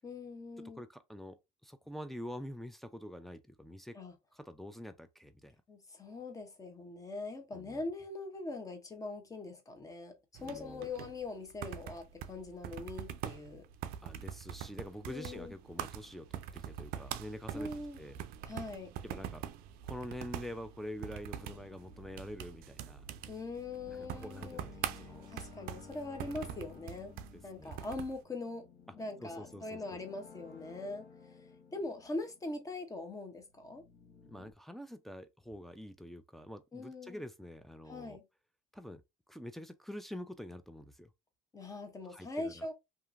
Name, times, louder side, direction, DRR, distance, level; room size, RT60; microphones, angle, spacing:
voice 1, 0.0-0.8 3.9-4.1 5.7-10.1 10.4-13.6 15.0-15.5 17.5-18.0 18.5-18.9 23.3-24.6 25.0-27.1 27.4-28.7 29.0-33.8 36.7-37.2 37.9-38.2 41.5-42.7, left 2 dB, 20° left, 0.8 m, -42 dB
voice 2, 0.8-1.4 1.6-4.0 4.3-5.6 7.5-7.8 10.4-10.9 14.0-17.7 18.0-18.2 19.0-19.4 19.8-23.1 23.9-25.3 27.6-27.7 29.2-30.0 34.3-38.2 38.7-39.0 39.3-41.1 42.0-42.6, equal, ahead, 0.4 m, -46 dB
sound 1, 10.3-28.2, right 10 dB, 70° right, 0.4 m, -44 dB
sound 2, 21.3-33.0 33.4-34.5, left 5 dB, 60° left, 0.9 m, -56 dB
2.8 x 2.5 x 2.5 m
supercardioid pair, 100°, 16 cm